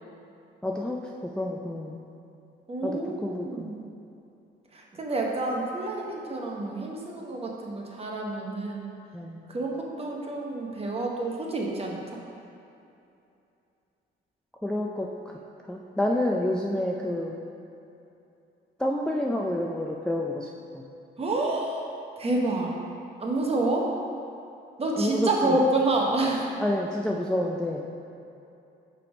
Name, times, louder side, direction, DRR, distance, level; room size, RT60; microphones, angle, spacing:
voice 1, 0.6-2.0 2.8-3.7 9.1-9.4 14.6-15.1 15.7-17.4 18.8-20.5 20.7-20.8 25.0-25.6 26.6-27.8, left 1 dB, 5° left, -2 dB, 0.3 m, -28 dB
voice 2, 2.7-3.8 4.7-8.9 9.5-12.2 21.2-21.9 22.2-22.8 23.2-24.0 24.8-26.5, right 2 dB, 30° right, -1 dB, 0.9 m, -28 dB
5.7 x 3.5 x 5.0 m, 2.7 s
cardioid pair, 90°, 20 cm